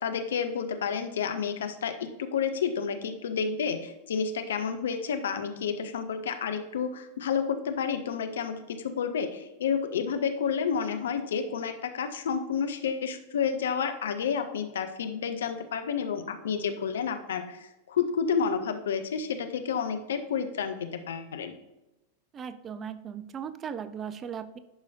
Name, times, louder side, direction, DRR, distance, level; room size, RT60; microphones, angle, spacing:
voice 1, 0.0-21.5, left 6 dB, 65° left, 8 dB, 0.7 m, -30 dB
voice 2, 22.3-24.6, right 7 dB, 25° right, 13 dB, 0.4 m, -37 dB
11.0 x 4.8 x 2.6 m, 0.97 s
figure-of-eight pair, 90°, 0 cm